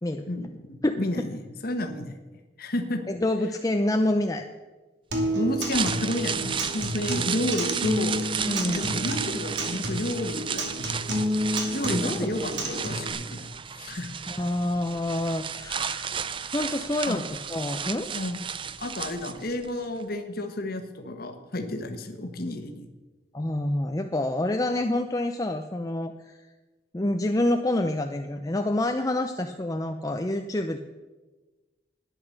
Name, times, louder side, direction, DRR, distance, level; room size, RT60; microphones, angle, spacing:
voice 1, 0.3-2.1 2.6-3.0 5.3-8.2 8.6-10.9 11.7-13.5 13.7-14.1 17.1-17.2 18.1-18.4 18.8-22.9, left 1 dB, 55° left, 5 dB, 1.4 m, -31 dB
voice 2, 3.1-4.5 8.5-8.9 11.9-12.4 14.3-16.2 16.5-18.1 23.3-26.4 26.9-30.8, left 1 dB, 20° left, 5 dB, 0.6 m, -27 dB
Acoustic guitar, 5.1-13.1, equal, 70° right, 2.6 m, -30 dB
sound 1, 5.5-19.7 20.0-20.1, right 7 dB, 30° right, 0.4 m, -33 dB
12.0 x 10.0 x 6.6 m, 1.2 s
head